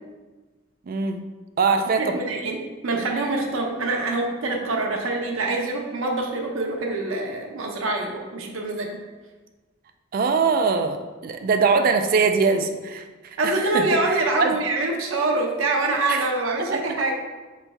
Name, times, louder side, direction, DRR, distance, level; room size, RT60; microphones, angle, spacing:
voice 1, 0.9-1.2 1.6-2.2 10.1-13.0 13.4-14.5 16.1-16.3 16.7-16.8, right 5 dB, 45° right, 7 dB, 0.3 m, -22 dB
voice 2, 2.0-9.0 13.4-17.2, right 2 dB, 90° right, 1 dB, 0.6 m, -25 dB
4.0 x 3.2 x 3.4 m, 1.3 s
head